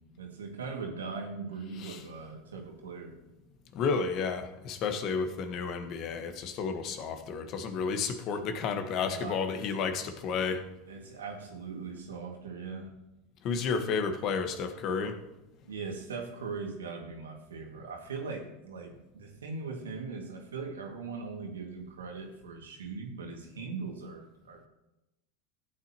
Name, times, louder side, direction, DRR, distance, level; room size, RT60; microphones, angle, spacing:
voice 1, 0.2-3.2 8.1-8.4 9.0-9.6 10.9-12.9 15.7-24.7, right 4 dB, 90° right, 1 dB, 2.2 m, -40 dB
voice 2, 3.7-10.6 13.4-15.1, left 5 dB, 50° left, 7 dB, 1.4 m, -31 dB
15.0 x 8.7 x 3.0 m, 0.94 s
hypercardioid pair, 95°, 0 cm